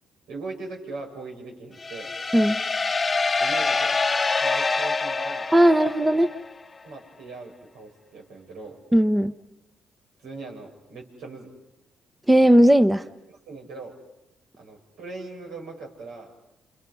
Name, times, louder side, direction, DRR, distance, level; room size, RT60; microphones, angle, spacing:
voice 1, 0.3-2.1 3.4-4.0 4.4-5.5 6.8-8.8 10.2-11.5 13.5-14.0 14.6-16.3, right 3 dB, 90° right, -1 dB, 7.2 m, -39 dB
sound 1, 1.8-6.5, left 4 dB, 30° left, 0.9 m, -25 dB
voice 2, 5.5-6.3 8.9-9.3 12.3-13.0, equal, 10° right, 10 dB, 0.8 m, -17 dB
29.0 x 29.0 x 5.6 m, 0.89 s
cardioid pair, 90°, 0 cm